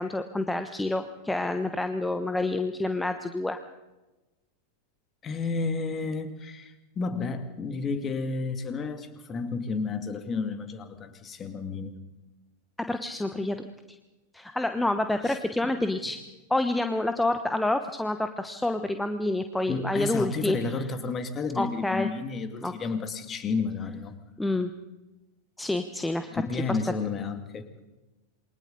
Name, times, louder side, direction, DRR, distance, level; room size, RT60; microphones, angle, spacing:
voice 1, 0.0-3.6 12.9-13.7 14.3-16.2 16.5-20.6 21.6-22.1 22.6-22.7 24.4-24.7 25.6-26.4 26.7-26.8, left 2 dB, 5° left, 8 dB, 1.1 m, -28 dB
voice 2, 5.2-11.9 15.2-15.4 15.6-15.7 19.7-24.1 26.3-27.7, left 4 dB, 25° left, 8 dB, 2.5 m, -31 dB
28.0 x 23.5 x 4.1 m, 1.1 s
figure-of-eight pair, 90°, 0 cm